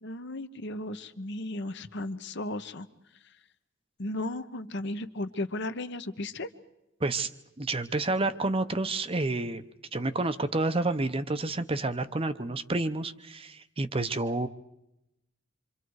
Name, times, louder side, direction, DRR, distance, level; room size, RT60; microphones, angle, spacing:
voice 1, 0.0-2.9 4.0-6.5, left 1 dB, 60° left, 9 dB, 1.2 m, -35 dB
voice 2, 7.6-9.6 9.9-14.5, right 2 dB, 30° right, 11 dB, 0.8 m, -29 dB
27.0 x 25.5 x 4.8 m, 0.86 s
head